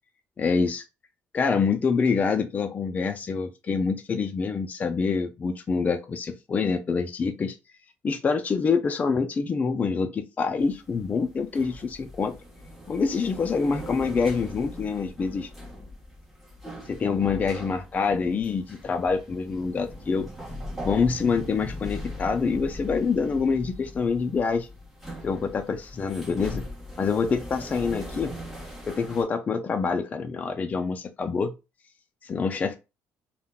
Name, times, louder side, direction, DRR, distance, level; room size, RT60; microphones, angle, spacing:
voice 1, 0.4-0.8 1.3-7.6 8.0-12.3 12.9-15.5 16.9-20.3 20.8-24.7 25.2-26.6 27.0-28.3 28.9-31.5 32.2-32.8, left 5 dB, 30° left, 0.4 m, -26 dB
sound 1, 10.6-29.2, left 1 dB, ahead, 1.2 m, -40 dB
3.6 x 2.1 x 2.3 m
cardioid pair, 115°, 5 cm